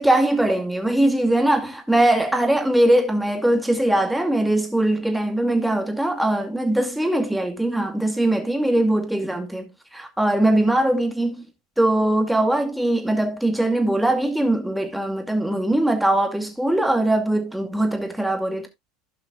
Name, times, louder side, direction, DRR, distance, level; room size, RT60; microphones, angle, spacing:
voice 1, 0.0-11.5 11.8-18.7, right 1 dB, 5° right, 2.3 m, -21 dB
16.0 x 5.7 x 2.3 m
hypercardioid pair, 90°, 0 cm